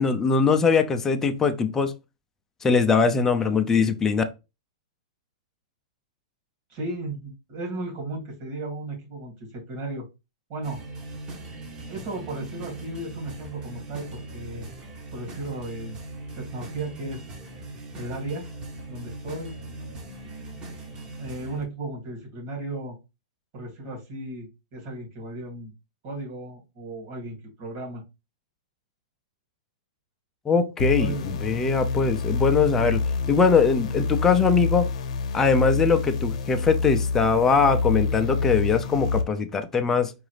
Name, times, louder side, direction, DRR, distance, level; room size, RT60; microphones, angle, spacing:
voice 1, 0.0-1.9 2.6-4.2 30.5-34.9 35.3-40.1, left 5 dB, 10° left, 0.4 m, -21 dB
voice 2, 6.7-10.1 10.5-10.8 11.9-14.7 15.1-16.0 16.4-17.2 18.0-18.4 18.9-19.5 21.2-23.0 23.5-25.7 26.0-28.0 31.0-31.3, right 2 dB, 45° right, 2.3 m, -35 dB
sound 1, 10.6-21.6, right 2 dB, 25° right, 1.0 m, -40 dB
sound 2, 30.8-39.2, left 4 dB, 65° left, 0.7 m, -27 dB
4.8 x 2.6 x 3.2 m
hypercardioid pair, 150°, 4 cm